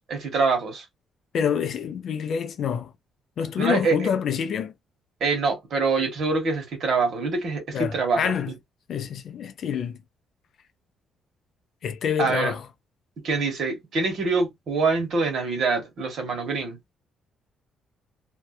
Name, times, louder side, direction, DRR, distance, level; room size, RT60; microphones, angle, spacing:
voice 1, 0.1-0.8 3.6-4.1 5.2-8.3 12.2-12.5 13.2-16.9, right 4 dB, 60° right, 1.3 m, -25 dB
voice 2, 1.3-2.9 3.4-4.7 7.7-8.5 8.9-10.0 11.8-12.7, left 7 dB, 55° left, 0.4 m, -27 dB
2.7 x 2.2 x 2.2 m
cardioid pair, 120°, 0 cm